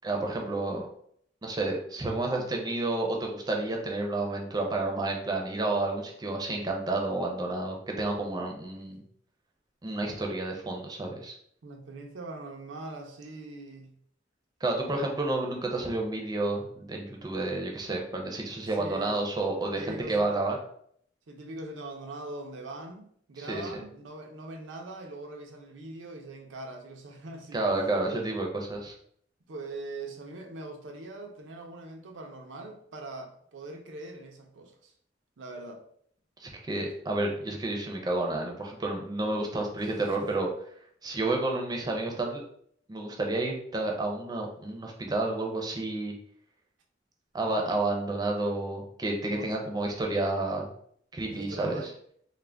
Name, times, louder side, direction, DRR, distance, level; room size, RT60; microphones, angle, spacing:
voice 1, 0.0-0.8 1.4-9.0 9.8-11.3 14.6-20.6 23.5-23.7 27.5-28.9 36.4-40.5 41.0-42.4 42.9-46.1 47.3-50.7 51.1-51.8, right 2 dB, 20° right, 1 dB, 0.4 m, -30 dB
voice 2, 11.6-14.0 18.8-19.2 19.6-20.4 21.3-27.6 29.5-34.9 35.4-35.8 39.7-40.3 49.3-49.5 51.3-51.9, right 2 dB, 85° right, 3 dB, 0.5 m, -42 dB
2.4 x 2.1 x 3.3 m, 0.65 s
head